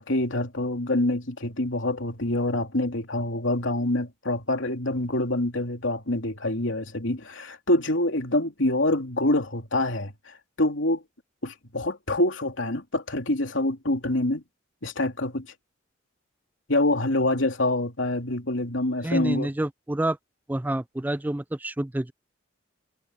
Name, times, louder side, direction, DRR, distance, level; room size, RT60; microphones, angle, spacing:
voice 1, 0.0-11.0 11.4-14.4 14.8-15.5 16.7-19.5, left 1 dB, 75° left, 2.9 m, -26 dB
voice 2, 19.0-20.2 20.5-22.1, right 1 dB, 10° right, 0.3 m, -28 dB
head